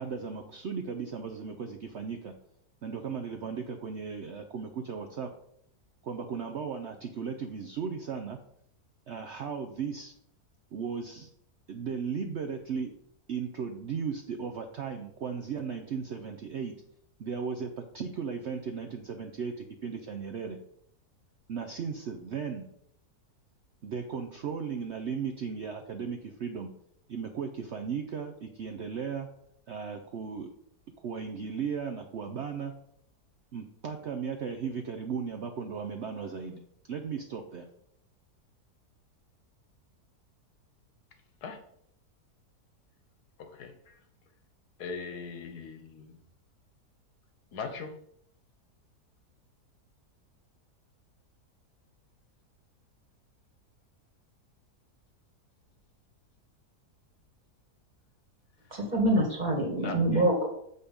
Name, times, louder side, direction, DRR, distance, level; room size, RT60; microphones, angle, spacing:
voice 1, 0.0-2.3 2.8-5.3 6.0-8.4 9.1-10.1 10.7-11.3 11.7-12.9 13.3-16.7 17.2-20.6 21.5-22.6 23.8-26.7 27.1-29.3 29.7-30.5 31.0-32.7 33.5-36.6 36.9-37.7, right 6 dB, 60° right, 5 dB, 0.7 m, -36 dB
voice 2, 43.4-44.0 44.8-46.2 47.5-48.0 59.8-60.1, left 5 dB, 80° left, 8 dB, 1.5 m, -40 dB
voice 3, 58.7-60.5, right 1 dB, 25° right, 0 dB, 1.8 m, -25 dB
6.7 x 5.3 x 5.2 m, 0.70 s
omnidirectional pair, 1.7 m